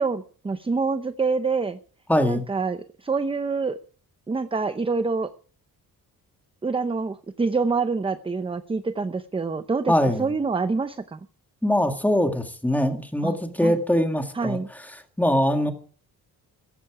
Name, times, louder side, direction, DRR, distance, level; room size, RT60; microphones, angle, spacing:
voice 1, 0.0-1.8 2.3-3.8 4.3-5.3 6.6-11.2 13.2-13.8 14.3-14.7, right 4 dB, 15° right, 11 dB, 0.6 m, -26 dB
voice 2, 2.1-2.4 9.9-10.3 11.6-14.6 15.2-15.7, equal, 5° left, 6 dB, 1.9 m, -22 dB
16.0 x 15.0 x 4.9 m, 0.43 s
wide cardioid pair, 170°, 38 cm